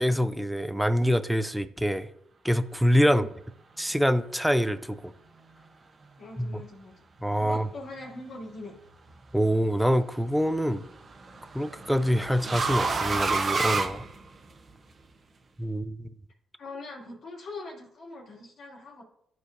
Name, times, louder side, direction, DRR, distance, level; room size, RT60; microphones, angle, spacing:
voice 1, 0.0-2.1 2.4-3.3 3.8-5.1 6.4-6.6 7.2-7.7 9.3-10.9 11.5-14.0 15.6-16.1, equal, ahead, 0.5 m, -25 dB
voice 2, 6.2-7.0 7.4-8.8 16.6-19.0, left 2 dB, 60° left, 2.5 m, -42 dB
sound 1, 8.8-9.3 10.7-14.7, right 4 dB, 40° right, 0.9 m, -29 dB
13.5 x 4.7 x 2.6 m
cardioid pair, 90°, 0 cm